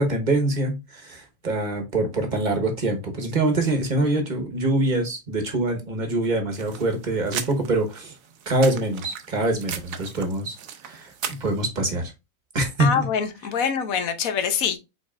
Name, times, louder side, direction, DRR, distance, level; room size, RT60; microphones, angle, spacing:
voice 1, 0.0-8.1 8.5-10.6 10.8-12.1 12.5-13.1, right 2 dB, 35° right, 1.1 m, -24 dB
sound 1, 6.5-11.6, right 8 dB, 80° right, 1.1 m, -37 dB
voice 2, 12.8-14.8, left 7 dB, 80° left, 1.2 m, -24 dB
5.3 x 4.0 x 2.4 m
omnidirectional pair, 1.4 m